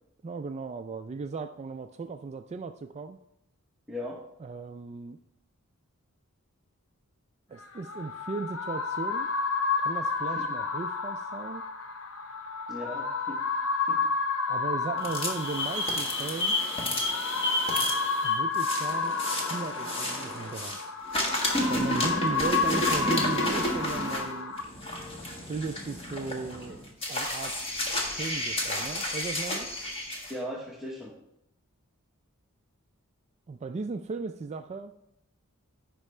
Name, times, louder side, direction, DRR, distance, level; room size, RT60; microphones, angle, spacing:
voice 1, 0.2-3.2 4.4-5.2 7.5-9.3 9.8-11.6 14.5-16.6 18.2-20.8 21.7-24.6 25.5-26.8 27.1-27.6 28.2-29.7 33.5-34.9, right 4 dB, 30° right, 8 dB, 0.3 m, -36 dB
voice 2, 3.9-4.2 10.4-10.6 12.7-13.4 13.9-14.1 30.3-31.2, left 1 dB, ahead, -4 dB, 0.9 m, -38 dB
sound 1, 7.6-24.6, left 4 dB, 65° left, 0.8 m, -31 dB
sound 2, 15.0-20.8 21.1-30.3, left 1 dB, 25° left, 1.6 m, -31 dB
15.0 x 5.4 x 3.2 m, 0.81 s
head